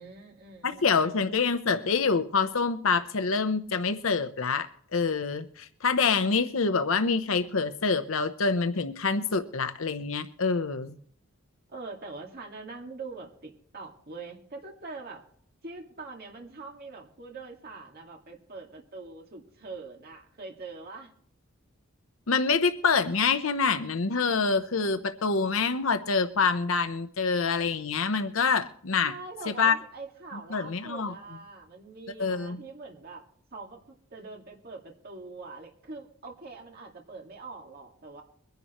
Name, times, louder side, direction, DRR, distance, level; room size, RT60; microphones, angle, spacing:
voice 1, 0.0-1.3 11.7-15.2 15.6-21.1 29.0-33.2 33.5-38.2, right 3 dB, 50° right, 1 dB, 2.1 m, -43 dB
voice 2, 0.6-4.7 4.9-11.0 22.3-29.1 29.6-29.8 30.5-31.1 32.2-32.6, left 5 dB, 75° left, 9 dB, 0.8 m, -26 dB
23.0 x 10.5 x 3.0 m, 0.62 s
head